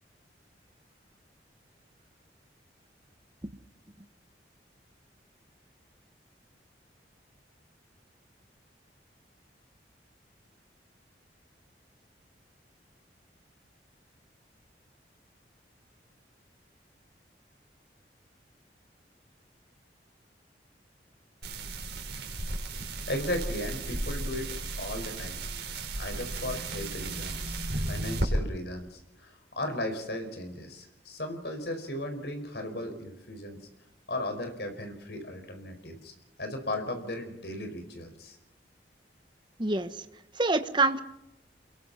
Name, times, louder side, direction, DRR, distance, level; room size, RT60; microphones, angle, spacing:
sound 1, 21.4-28.3, right 2 dB, 65° right, 4.7 m, -34 dB
voice 1, 23.1-33.6 34.1-38.4, left 1 dB, 70° left, 6 dB, 5.0 m, -36 dB
voice 2, 39.6-40.0 40.3-41.0, right 3 dB, 25° right, 10 dB, 1.3 m, -26 dB
30.0 x 22.5 x 4.2 m, 0.87 s
head